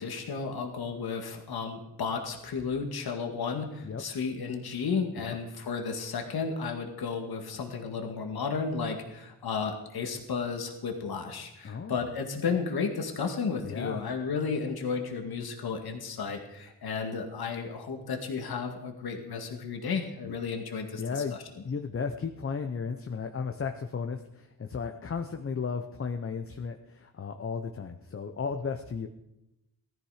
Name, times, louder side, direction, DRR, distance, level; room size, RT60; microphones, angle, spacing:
voice 1, 0.0-21.2, left 5 dB, 80° left, 4 dB, 1.9 m, -33 dB
voice 2, 11.6-12.0 13.6-14.0 20.3-20.4 21.0-21.4 21.6-29.1, left 5 dB, 35° left, 7 dB, 0.8 m, -34 dB
19.0 x 13.5 x 4.9 m, 0.90 s
wide cardioid pair, 160°, 37 cm